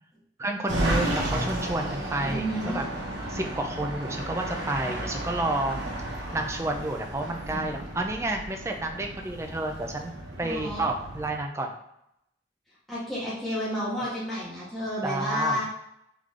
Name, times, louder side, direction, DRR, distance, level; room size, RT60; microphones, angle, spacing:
voice 1, 0.4-2.9 3.3-5.8 6.3-10.1 10.4-11.7 15.0-15.6, right 2 dB, 15° right, 3 dB, 0.4 m, -30 dB
sound 1, 0.7-11.3, right 1 dB, 75° right, 0.9 m, -33 dB
voice 2, 2.2-2.8 10.4-10.8 12.9-15.6, equal, ahead, -10 dB, 1.3 m, -31 dB
3.7 x 3.6 x 3.2 m, 0.79 s
head